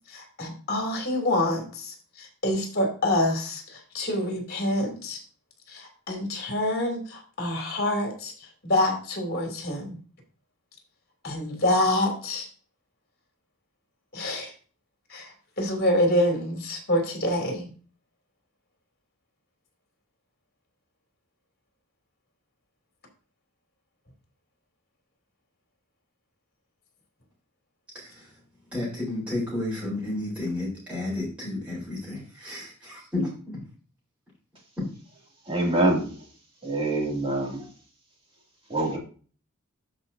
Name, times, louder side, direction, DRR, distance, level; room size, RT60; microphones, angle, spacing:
voice 1, 0.1-5.2 5.7-8.3 8.6-10.0 11.2-12.5 14.1-14.5 15.1-15.3 15.6-17.7, left 1 dB, 50° left, 2 dB, 3.1 m, -26 dB
voice 2, 27.9-28.3 28.7-33.6, left 2 dB, 5° right, -8 dB, 4.0 m, -32 dB
voice 3, 35.5-36.2 36.6-37.7 38.7-39.0, right 2 dB, 25° right, -1 dB, 2.6 m, -25 dB
13.0 x 5.1 x 2.8 m, 0.39 s
head